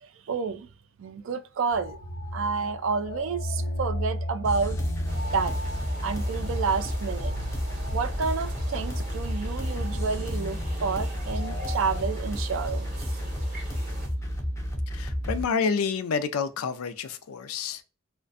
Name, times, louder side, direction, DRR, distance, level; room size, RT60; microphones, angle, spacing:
voice 1, 0.0-0.7 1.0-2.0 2.3-4.8 5.3-5.5 6.0-7.4 7.9-13.2, right 5 dB, 70° right, 0.3 m, -30 dB
sound 1, 1.7-12.0, equal, 75° left, 0.9 m, -35 dB
sound 2, 4.4-15.4, equal, 15° left, 0.4 m, -31 dB
sound 3, 5.1-14.1, equal, 35° right, 0.7 m, -45 dB
voice 2, 14.9-17.8, left 5 dB, 90° left, 0.4 m, -29 dB
2.4 x 2.1 x 2.4 m
head